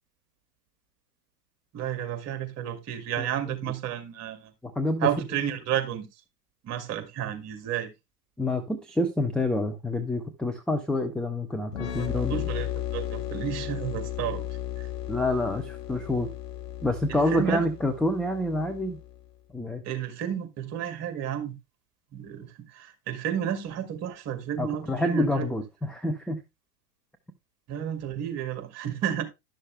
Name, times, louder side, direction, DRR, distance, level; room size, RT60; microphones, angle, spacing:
voice 1, 1.7-4.5 5.0-6.1 6.6-7.9 12.0-14.4 14.8-14.9 17.1-17.6 19.8-21.5 22.1-25.5 27.7-29.2, right 10 dB, 30° right, 2.2 m, -31 dB
voice 2, 4.6-5.1 8.4-12.4 15.1-16.3 16.8-19.0 19.5-19.8 24.6-26.4, left 1 dB, ahead, 0.5 m, -27 dB
sound 1, 11.7-19.2, left 12 dB, 75° left, 1.1 m, -35 dB
11.5 x 6.5 x 3.3 m
figure-of-eight pair, 100°, 48 cm